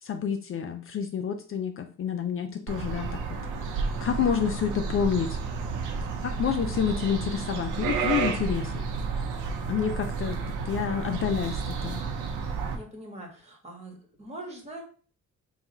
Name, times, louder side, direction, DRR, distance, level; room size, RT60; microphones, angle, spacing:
voice 1, 0.0-3.4 3.6-5.4 6.0-8.8 9.7-12.0, left 7 dB, 45° left, 7 dB, 0.5 m, -29 dB
sound 1, 2.7-12.8, right 5 dB, 90° right, 0.7 m, -31 dB
voice 2, 5.6-5.9 12.7-14.8, right 1 dB, 20° right, 1 dB, 1.4 m, -43 dB
3.4 x 2.4 x 4.2 m, 0.41 s
cardioid pair, 90°, 30 cm